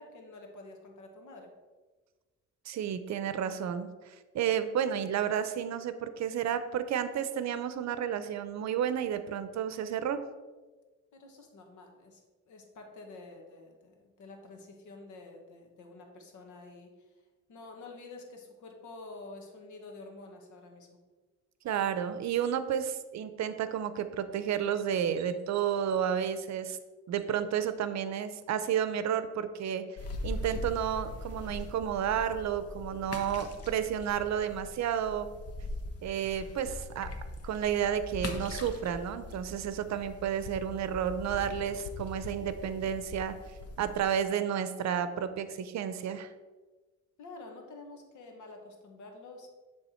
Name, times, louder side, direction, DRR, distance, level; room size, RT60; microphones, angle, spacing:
voice 1, 0.0-1.5 11.1-12.2 12.5-17.1 17.5-20.9 44.2-44.3 47.2-49.5, left 2 dB, 75° left, 3 dB, 1.4 m, -49 dB
voice 2, 2.7-10.2 21.6-26.8 27.1-29.8 30.2-35.3 36.0-37.1 37.4-43.3 43.8-46.3, right 9 dB, 65° right, 11 dB, 0.6 m, -31 dB
sound 1, 30.0-44.0, left 2 dB, 50° left, 1.0 m, -41 dB
9.8 x 3.5 x 4.4 m, 1.3 s
cardioid pair, 90°, 30 cm